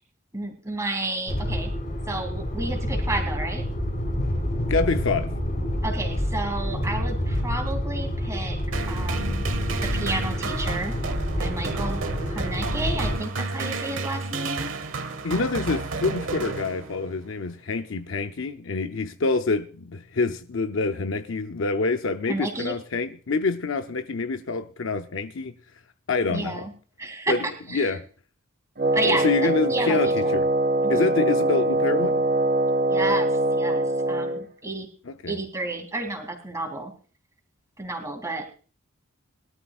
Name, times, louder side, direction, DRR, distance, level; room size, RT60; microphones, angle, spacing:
voice 1, 0.3-1.7 2.1-3.6 5.8-8.6 8.8-9.4 9.8-10.9 11.4-14.7 22.3-22.7 26.3-26.7 27.0-28.0 28.9-30.4 30.8-31.1 32.9-34.9 35.3-36.9 37.8-38.5, right 2 dB, 15° right, 2.8 m, -31 dB
sound 1, 1.3-13.2, equal, 45° left, 2.6 m, -28 dB
voice 2, 4.7-5.3 15.2-25.5 26.1-26.7 27.3-28.0 29.0-30.5 30.9-32.2 35.1-35.4, left 4 dB, 70° left, 0.6 m, -26 dB
sound 2, 8.7-17.2, right 3 dB, 75° right, 1.2 m, -31 dB
Wind instrument woodwind instrument, 28.8-34.5, right 1 dB, 50° right, 1.1 m, -23 dB
21.5 x 12.5 x 2.4 m
head